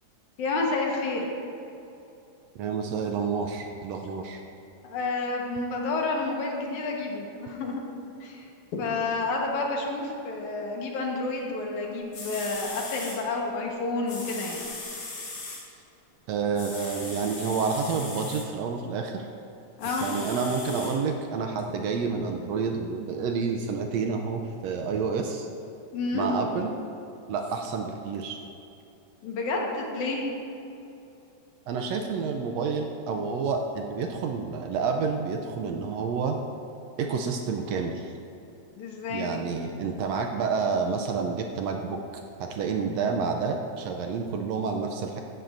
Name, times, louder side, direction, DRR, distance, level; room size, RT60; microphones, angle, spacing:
voice 1, 0.4-1.3 4.8-7.8 8.2-8.5 8.7-14.6 19.8-20.1 25.9-26.3 29.2-30.2 38.8-39.3, left 3 dB, 80° left, 0 dB, 2.7 m, -30 dB
voice 2, 2.6-4.4 16.3-19.3 19.8-25.5 26.1-26.7 27.3-28.4 31.7-36.4 37.0-38.1 39.1-42.0 42.4-45.2, right 5 dB, 75° right, 4 dB, 1.6 m, -29 dB
sound 1, 11.8-11.9 12.1-13.2 14.1-15.6 16.5-18.4 19.8-20.9 21.6-21.7, left 3 dB, 50° left, 2.9 m, -38 dB
15.5 x 11.0 x 2.6 m, 2.8 s
omnidirectional pair, 3.4 m